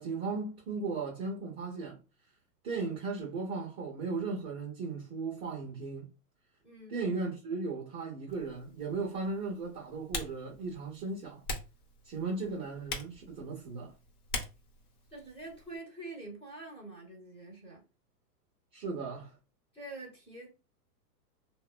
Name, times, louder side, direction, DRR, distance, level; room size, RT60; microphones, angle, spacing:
voice 1, 0.0-2.0 2.6-6.1 6.9-11.4 12.0-13.9 18.7-19.3, right 4 dB, 20° right, 0.4 m, -36 dB
voice 2, 6.6-7.0 15.1-17.8 19.7-20.5, right 2 dB, 10° left, 0.8 m, -46 dB
Typing, 8.3-15.8, left 3 dB, 65° left, 0.9 m, -44 dB
2.8 x 2.1 x 2.2 m
hypercardioid pair, 135°, 48 cm